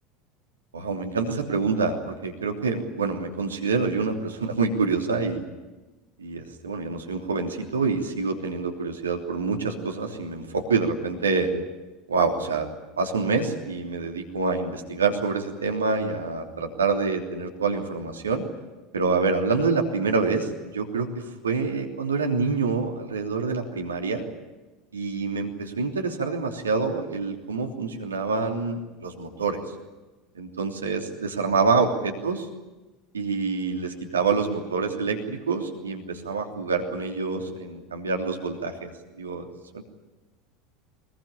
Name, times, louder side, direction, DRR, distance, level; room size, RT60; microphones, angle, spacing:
voice 1, 0.7-5.4 6.2-11.5 12.1-12.7 13.0-18.4 18.9-24.2 24.9-29.6 30.3-32.5 33.1-39.8, right 4 dB, 80° right, 3 dB, 3.1 m, -26 dB
23.5 x 21.5 x 8.6 m, 1.1 s
figure-of-eight pair, 75°, 0 cm